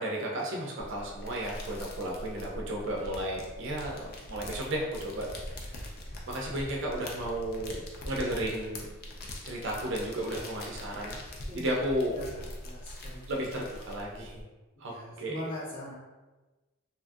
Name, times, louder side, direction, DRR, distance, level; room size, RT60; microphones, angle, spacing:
voice 1, 0.0-5.9 6.3-8.9 9.4-11.1 11.5-12.2 13.3-14.4 14.8-15.4, right 1 dB, 60° right, -2 dB, 0.4 m, -34 dB
sound 1, 0.8-14.4, left 1 dB, 45° left, 0.4 m, -43 dB
voice 2, 12.1-13.6 14.8-15.9, left 1 dB, 70° left, -9 dB, 1.2 m, -42 dB
2.7 x 2.5 x 2.3 m, 1.2 s
head